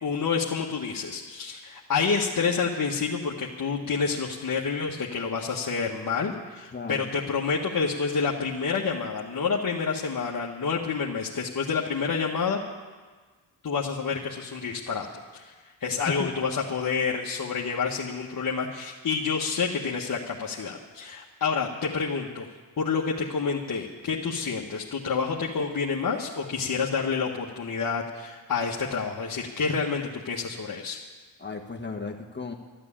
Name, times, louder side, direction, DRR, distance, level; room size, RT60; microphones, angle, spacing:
voice 1, 0.0-12.6 13.6-15.1 15.3-15.5 15.8-22.4 22.8-31.0, left 5 dB, 45° left, -2 dB, 1.6 m, -28 dB
voice 2, 6.7-7.1 15.9-16.5 31.4-32.5, left 4 dB, 25° left, 1 dB, 1.5 m, -35 dB
12.0 x 11.5 x 8.8 m, 1.4 s
supercardioid pair, 60°, 46 cm